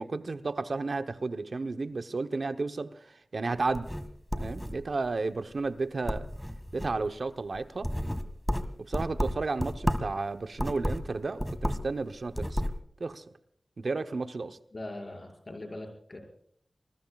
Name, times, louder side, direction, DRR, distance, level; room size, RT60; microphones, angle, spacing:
voice 1, 0.0-2.9 3.3-3.9 4.4-6.3 6.7-7.9 8.9-12.6 13.0-13.2 13.8-14.6, right 3 dB, 75° right, 9 dB, 0.9 m, -32 dB
sound 1, 3.6-5.1 5.5-5.8 6.1-7.1 7.5-10.2 10.5-12.0 12.2-12.8, equal, 5° left, 1.7 m, -32 dB
voice 2, 14.7-16.2, left 1 dB, 55° left, 3 dB, 5.7 m, -41 dB
26.5 x 21.0 x 2.4 m, 0.66 s
cardioid pair, 45°, 0 cm